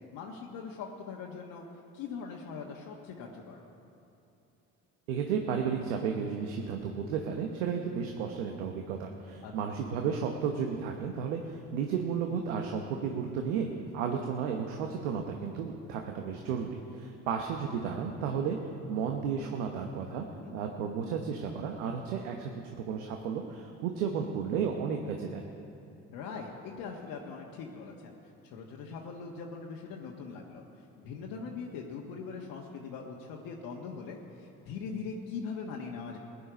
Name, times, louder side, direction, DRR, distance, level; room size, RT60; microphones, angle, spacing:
voice 1, 0.1-1.6 1.9-3.6 8.0-8.1 9.4-9.7 20.4-20.5 26.1-28.2 28.4-36.2, left 5 dB, 70° left, -1 dB, 1.4 m, -41 dB
voice 2, 5.1-13.7 13.9-18.6 18.9-20.3 20.5-25.5, right 6 dB, 85° right, 3 dB, 1.0 m, -33 dB
16.5 x 10.0 x 5.1 m, 2.9 s
hypercardioid pair, 70°, 35 cm